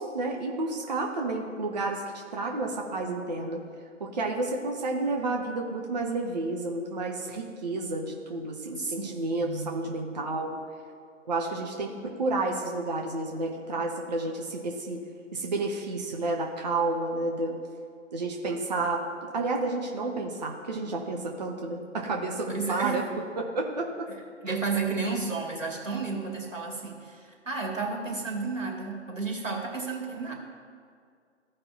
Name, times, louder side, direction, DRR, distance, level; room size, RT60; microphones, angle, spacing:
voice 1, 0.0-2.0 2.3-3.6 4.0-10.6 11.3-15.0 15.3-17.6 18.1-23.0 23.4-24.1 24.5-24.6, right 2 dB, 35° right, 0 dB, 0.8 m, -31 dB
voice 2, 8.8-10.1 22.5-23.0 24.4-30.3, right 4 dB, 85° right, -1 dB, 2.2 m, -32 dB
15.0 x 5.2 x 2.7 m, 2.2 s
figure-of-eight pair, 140°, 38 cm